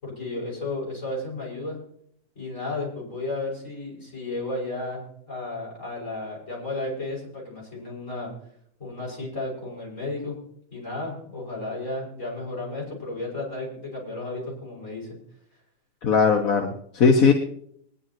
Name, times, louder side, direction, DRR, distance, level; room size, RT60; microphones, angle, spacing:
voice 1, 0.0-1.8 2.4-8.3 8.8-10.4 10.7-15.1, left 2 dB, 65° left, -5 dB, 6.8 m, -33 dB
voice 2, 16.0-17.3, left 5 dB, 85° left, 2 dB, 1.6 m, -19 dB
23.0 x 10.5 x 3.0 m, 0.68 s
omnidirectional pair, 1.4 m